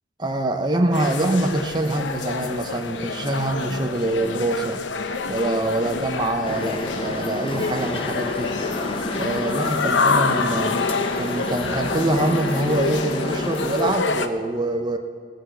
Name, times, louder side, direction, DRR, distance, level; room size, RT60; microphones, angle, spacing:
voice 1, 0.2-4.8 5.3-8.5 9.2-10.8 11.2-15.0, right 1 dB, 25° right, 4 dB, 0.6 m, -24 dB
sound 1, 0.9-14.3, left 4 dB, 85° left, 0.7 m, -27 dB
sound 2, 6.4-13.9, left 1 dB, 30° left, 0.7 m, -30 dB
16.5 x 6.2 x 7.9 m, 2.1 s
head